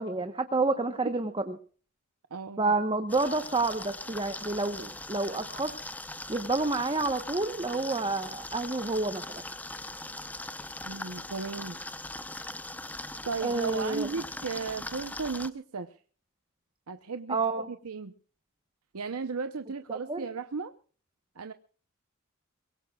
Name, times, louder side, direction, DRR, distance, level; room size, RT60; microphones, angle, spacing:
voice 1, 0.0-1.5 2.6-5.7 6.3-9.4 13.4-14.1 17.3-17.7 19.9-20.3, right 3 dB, 25° right, 7 dB, 1.1 m, -29 dB
voice 2, 2.3-2.7 10.8-11.8 13.2-16.0 16.9-17.4 17.7-18.1 18.9-20.7 21.4-21.5, right 4 dB, 85° right, 9 dB, 0.8 m, -35 dB
sound 1, 3.1-15.5, left 2 dB, 10° left, 0.8 m, -40 dB
23.5 x 22.0 x 2.4 m, 0.41 s
head